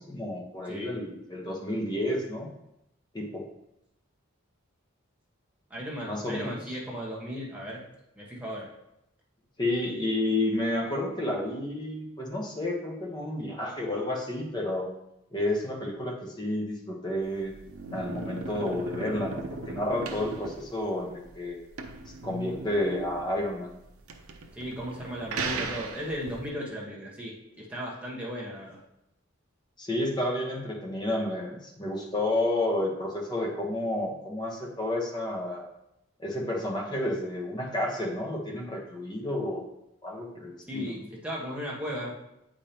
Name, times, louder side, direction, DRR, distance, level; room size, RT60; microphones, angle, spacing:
voice 1, 0.0-2.5 3.1-3.5 6.0-6.6 9.6-14.9 15.3-17.6 17.9-21.6 22.2-23.7 29.8-35.7 36.2-39.6 40.0-41.0, left 1 dB, 20° left, -1 dB, 1.0 m, -31 dB
voice 2, 5.7-7.8 8.1-8.7 24.5-28.8 40.7-42.1, equal, 5° right, -5 dB, 1.3 m, -36 dB
sound 1, 17.2-26.5, right 3 dB, 80° right, 0.7 m, -38 dB
8.3 x 5.1 x 2.9 m, 0.84 s
head